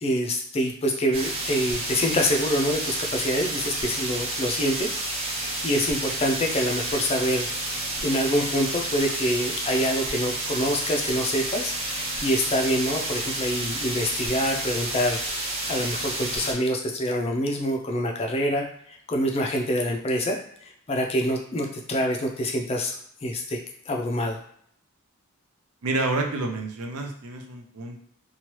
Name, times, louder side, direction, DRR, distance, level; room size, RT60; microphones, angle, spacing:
voice 1, 0.0-15.2 15.7-23.6 23.9-24.4, equal, 25° left, 2 dB, 0.4 m, -26 dB
sound 1, 1.1-16.5, right 2 dB, 25° right, 0.6 m, -30 dB
voice 2, 25.8-28.0, right 2 dB, 80° right, 3 dB, 0.5 m, -29 dB
3.0 x 2.3 x 3.0 m, 0.65 s
head